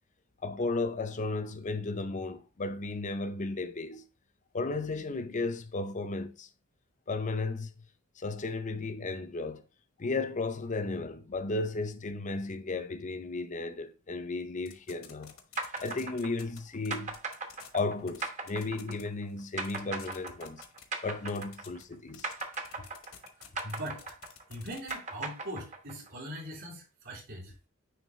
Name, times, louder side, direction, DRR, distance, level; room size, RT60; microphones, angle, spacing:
voice 1, 0.4-4.0 4.5-6.5 7.1-7.7 8.2-9.7 10.0-15.4 15.8-17.1 17.7-20.6 21.0-22.3 22.8-22.9, left 3 dB, 35° left, 0.6 m, -34 dB
sound 1, 14.7-16.6 16.8-17.8 18.1-18.2 18.5-19.0 19.3-19.4 19.6-20.8 21.3-21.8 22.1-24.9, left 9 dB, 65° left, 1.1 m, -50 dB
sound 2, 15.6-21.9 22.2-26.1, right 4 dB, 35° right, 0.9 m, -38 dB
voice 2, 23.6-24.2 24.5-27.5, equal, 60° right, 3.2 m, -41 dB
9.2 x 3.3 x 3.1 m
head